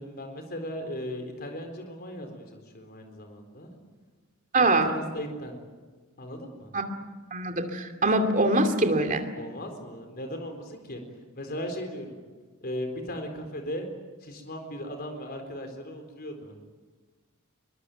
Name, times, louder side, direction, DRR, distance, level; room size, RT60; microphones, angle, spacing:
voice 1, 0.0-3.7 4.5-5.5 6.2-6.7 9.3-11.0 11.3-12.2 12.6-13.9 14.2-16.6, equal, 45° left, 5 dB, 4.3 m, -37 dB
voice 2, 4.5-4.9 6.7-6.8 7.3-9.2, right 2 dB, 35° right, 5 dB, 2.6 m, -23 dB
23.5 x 22.0 x 9.2 m, 1.4 s
head